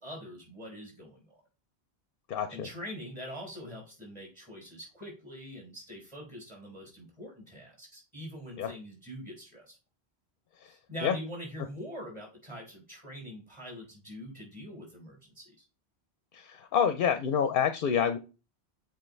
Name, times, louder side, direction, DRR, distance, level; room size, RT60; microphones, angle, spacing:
voice 1, 0.0-1.4 2.5-9.8 10.6-15.6, equal, 25° right, -2 dB, 4.1 m, -44 dB
voice 2, 2.3-2.7 8.6-8.7 11.0-11.2 16.3-18.2, left 7 dB, 60° left, 9 dB, 0.7 m, -27 dB
7.7 x 4.2 x 3.2 m, 0.32 s
omnidirectional pair, 1.1 m